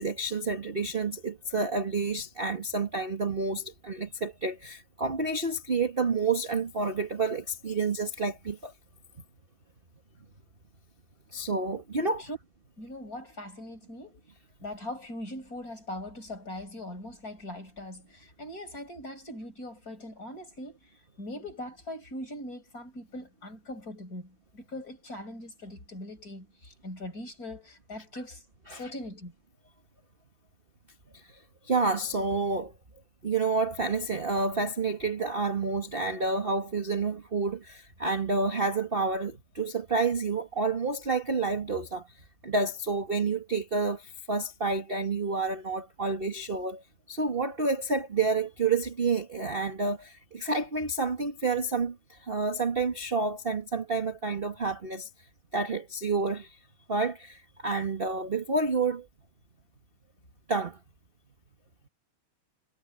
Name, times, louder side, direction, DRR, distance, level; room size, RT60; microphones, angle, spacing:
voice 1, 0.0-8.7 11.3-12.3 28.7-28.9 31.1-31.4 31.6-32.7 33.2-42.1 42.4-55.1 55.5-56.6 56.9-59.1 60.5-60.8, right 3 dB, 25° right, 1.4 m, -29 dB
voice 2, 12.8-14.2 14.6-20.8 21.2-28.4 28.7-29.3, left 1 dB, 25° left, 6.4 m, -41 dB
omnidirectional pair, 3.6 m